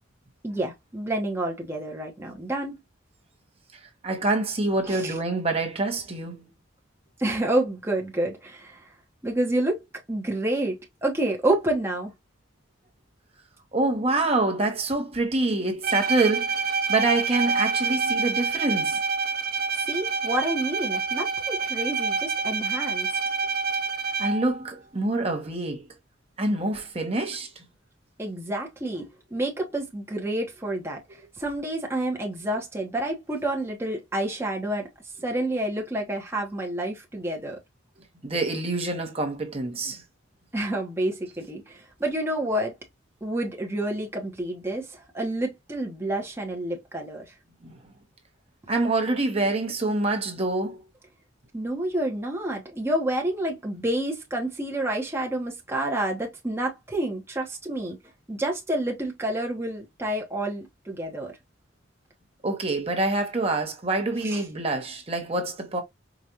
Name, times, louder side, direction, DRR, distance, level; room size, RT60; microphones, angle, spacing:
voice 1, 0.4-2.8 4.8-5.2 7.2-8.9 9.2-9.8 10.1-12.1 19.8-23.1 28.2-34.9 35.2-37.6 40.5-42.7 43.2-47.3 51.5-58.0 58.3-61.4 64.2-64.4, right 1 dB, 15° right, 0.9 m, -29 dB
voice 2, 4.0-6.5 13.7-19.0 24.2-25.9 26.4-27.6 38.2-40.0 47.6-47.8 48.7-50.8 62.4-65.8, right 2 dB, 30° right, 1.0 m, -26 dB
Bowed string instrument, 15.8-24.6, right 5 dB, 50° right, 0.5 m, -27 dB
4.9 x 2.4 x 2.7 m
head